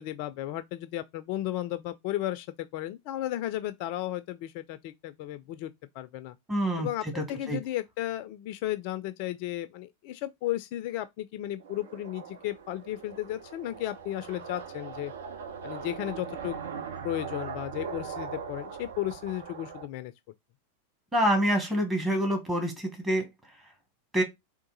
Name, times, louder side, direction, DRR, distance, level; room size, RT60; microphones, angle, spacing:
voice 1, 0.0-6.4 6.8-15.1 15.6-16.6 17.0-20.1, left 14 dB, 45° left, 0.4 m, -34 dB
voice 2, 6.5-6.9 7.1-7.6 21.1-23.3 24.1-24.2, right 1 dB, 15° right, 1.5 m, -26 dB
sound 1, 11.6-19.9, right 6 dB, 60° right, 0.7 m, -40 dB
3.6 x 2.5 x 3.9 m
figure-of-eight pair, 90°, 0 cm